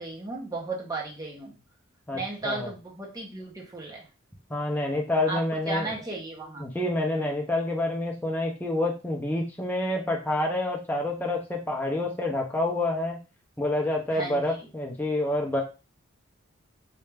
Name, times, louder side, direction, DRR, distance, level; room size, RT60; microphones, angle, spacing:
voice 1, 0.0-1.6 2.1-4.1 5.3-6.7 14.1-14.7, right 2 dB, 15° right, -2 dB, 0.9 m, -35 dB
voice 2, 2.1-2.7 4.5-5.9 6.6-13.2 13.6-15.6, left 1 dB, 10° left, 0 dB, 0.7 m, -28 dB
3.3 x 2.7 x 3.3 m, 0.30 s
head